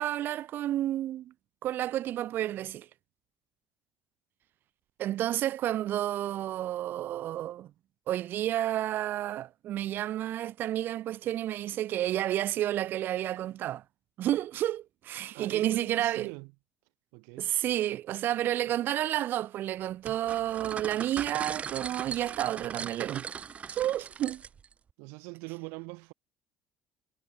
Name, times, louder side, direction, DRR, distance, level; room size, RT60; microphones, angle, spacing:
voice 1, 0.0-1.3 1.6-2.9 5.0-7.7 8.1-13.8 14.2-16.3 17.4-23.3 23.7-24.4, right 13 dB, 55° right, 3.1 m, -30 dB
voice 2, 15.3-16.5 17.1-17.5 25.0-26.1, right 33 dB, 85° right, 3.0 m, -41 dB
sound 1, 20.1-24.7, right 7 dB, 30° right, 0.8 m, -39 dB
cardioid pair, 110°, 4 cm